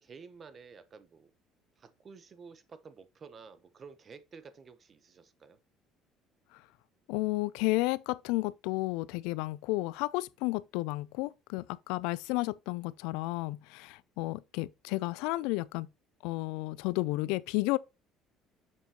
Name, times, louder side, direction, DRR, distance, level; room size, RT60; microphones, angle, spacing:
voice 1, 0.0-1.3 1.8-5.6, right 5 dB, 35° right, 0.8 m, -51 dB
voice 2, 7.1-15.9 16.2-17.8, left 21 dB, 90° left, 0.3 m, -32 dB
7.3 x 5.4 x 2.9 m
cardioid pair, 130°, 0 cm